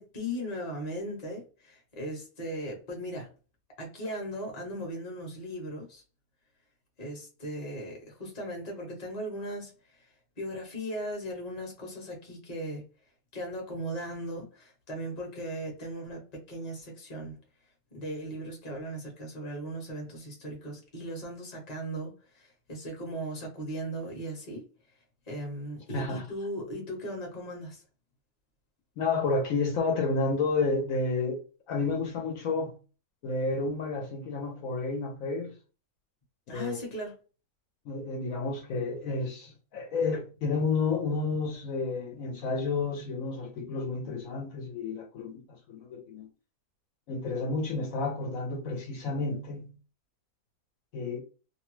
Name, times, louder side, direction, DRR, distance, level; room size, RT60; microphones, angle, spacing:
voice 1, 0.0-3.3 3.8-6.0 7.0-10.1 10.4-12.8 13.3-17.4 17.9-24.6 25.3-27.8 36.5-37.2, equal, 30° left, 0.9 m, -38 dB
voice 2, 25.9-26.3 29.0-31.4 31.7-32.8 33.2-35.5 36.5-36.8 37.9-46.3 47.1-49.7 50.9-51.2, left 3 dB, 70° left, 1.0 m, -31 dB
2.6 x 2.1 x 3.1 m
omnidirectional pair, 1.6 m